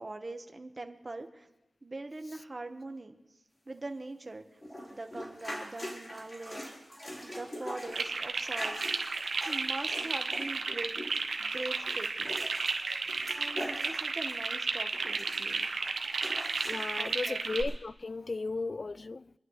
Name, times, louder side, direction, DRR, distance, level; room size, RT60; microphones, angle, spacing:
voice 1, 0.0-1.5 1.8-3.2 3.7-4.6 4.9-6.7 7.2-8.8 9.3-10.9 11.4-12.4 13.3-15.7 17.0-17.4, right 2 dB, 35° right, 1.3 m, -42 dB
sound 1, 4.6-14.6 14.9-17.1 17.7-17.8, equal, 25° left, 4.1 m, -43 dB
sound 2, 7.9-17.6, right 4 dB, 75° right, 1.3 m, -33 dB
voice 2, 16.6-19.3, left 3 dB, 45° left, 0.4 m, -35 dB
27.0 x 11.0 x 3.3 m
wide cardioid pair, 70°, 0 cm